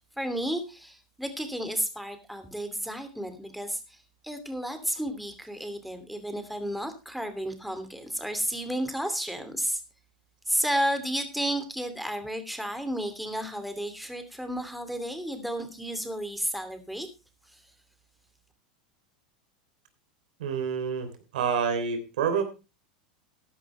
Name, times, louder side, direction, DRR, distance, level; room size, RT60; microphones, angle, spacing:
voice 1, 0.2-9.8 10.5-17.1 17.5-17.6, equal, ahead, 7 dB, 2.7 m, -32 dB
voice 2, 20.4-21.1 21.3-22.4, right 6 dB, 75° right, 9 dB, 3.3 m, -27 dB
14.5 x 10.5 x 3.3 m, 0.29 s
hypercardioid pair, 100°, 4 cm